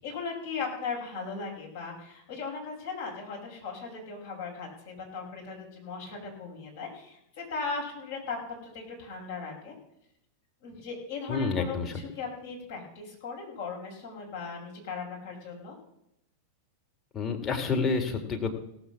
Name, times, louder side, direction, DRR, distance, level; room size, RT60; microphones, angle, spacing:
voice 1, 0.0-9.7 10.6-15.8, left 4 dB, 55° left, -1 dB, 5.8 m, -38 dB
voice 2, 11.3-12.0 17.1-18.5, left 4 dB, 20° left, 2 dB, 2.4 m, -29 dB
17.0 x 7.9 x 6.2 m, 0.80 s
figure-of-eight pair, 90°, 0 cm